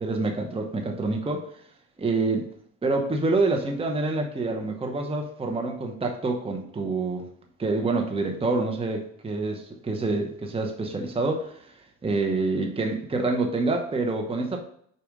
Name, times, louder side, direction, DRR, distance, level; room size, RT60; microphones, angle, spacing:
voice 1, 0.0-1.5 2.0-2.5 2.8-7.3 7.6-11.8 12.0-14.6, right 3 dB, 20° right, 3 dB, 0.8 m, -27 dB
4.9 x 4.2 x 5.1 m, 0.64 s
cardioid pair, 90°, 30 cm